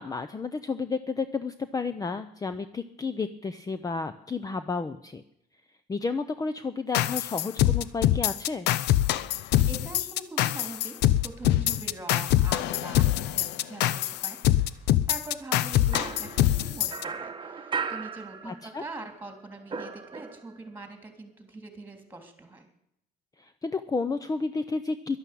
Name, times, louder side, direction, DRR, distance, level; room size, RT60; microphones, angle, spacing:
voice 1, 0.0-5.2 5.9-8.7 18.4-18.8 23.4-25.2, left 4 dB, 20° left, 12 dB, 0.7 m, -31 dB
sound 1, 6.9-17.0, left 13 dB, 85° left, 0.7 m, -24 dB
voice 2, 9.7-11.0 11.2-22.7, right 2 dB, 10° right, 6 dB, 3.4 m, -43 dB
sound 2, 15.9-18.9 19.2-20.7, right 5 dB, 30° right, 1.2 m, -37 dB
11.5 x 11.5 x 8.6 m, 0.76 s
cardioid pair, 110°, 17 cm